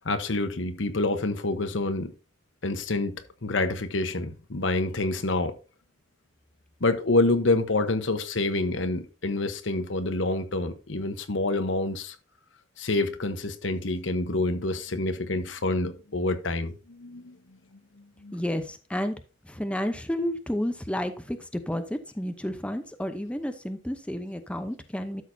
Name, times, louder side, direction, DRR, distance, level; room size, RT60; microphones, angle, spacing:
voice 1, 0.0-2.1 2.6-5.6 6.8-12.2 12.8-18.4, left 2 dB, 70° left, 1.1 m, -27 dB
voice 2, 18.3-19.2 19.4-25.2, equal, 5° left, 0.8 m, -31 dB
12.5 x 6.5 x 2.7 m
head